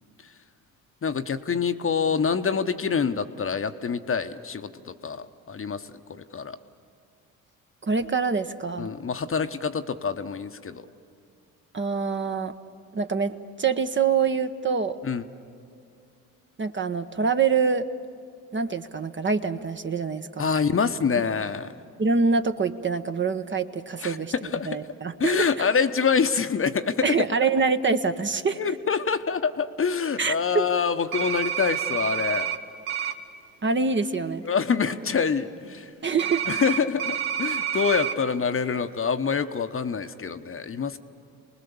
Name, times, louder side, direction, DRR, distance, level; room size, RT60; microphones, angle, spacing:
voice 1, 1.0-6.6 8.8-10.9 15.0-15.2 20.4-21.7 24.0-24.8 25.2-27.2 28.6-32.5 34.4-35.9 36.5-41.0, left 6 dB, 35° left, 9 dB, 1.0 m, -26 dB
voice 2, 7.8-8.9 11.7-12.5 12.9-15.0 16.6-17.9 18.5-20.4 22.0-24.3 24.6-25.7 27.0-28.6 30.2-30.6 33.6-34.4 36.0-36.5, right 5 dB, 30° right, 8 dB, 1.0 m, -25 dB
sound 1, 31.1-32.6 32.9-33.1 36.2-38.1, right 9 dB, 80° right, 1.2 m, -28 dB
28.0 x 20.0 x 7.1 m, 2.4 s
hypercardioid pair, 55°, 39 cm